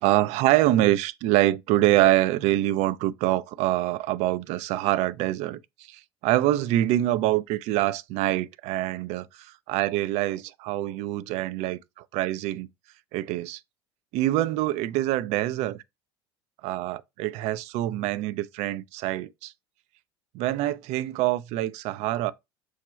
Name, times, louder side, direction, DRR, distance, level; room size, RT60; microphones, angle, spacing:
voice 1, 0.0-5.6 5.9-12.7 13.1-13.6 14.1-15.8 16.6-19.5 20.3-22.3, right 15 dB, 55° right, 0.4 m, -25 dB
6.2 x 2.2 x 3.0 m
hypercardioid pair, 70°, 14 cm